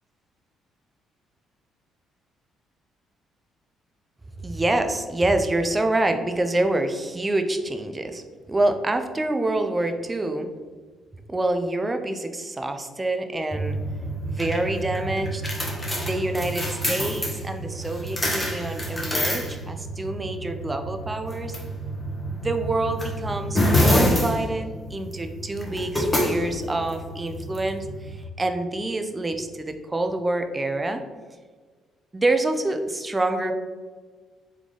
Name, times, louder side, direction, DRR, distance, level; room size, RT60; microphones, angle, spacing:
voice 1, 4.4-8.2 8.5-10.5 11.3-13.8 14.2-15.4 16.0-21.6 22.3-31.0 32.1-33.5, right 2 dB, 20° right, 6 dB, 0.5 m, -26 dB
sound 1, 13.5-28.2, equal, 15° left, 1.1 m, -27 dB
3.6 x 3.2 x 3.8 m, 1.5 s
supercardioid pair, 70°, 0 cm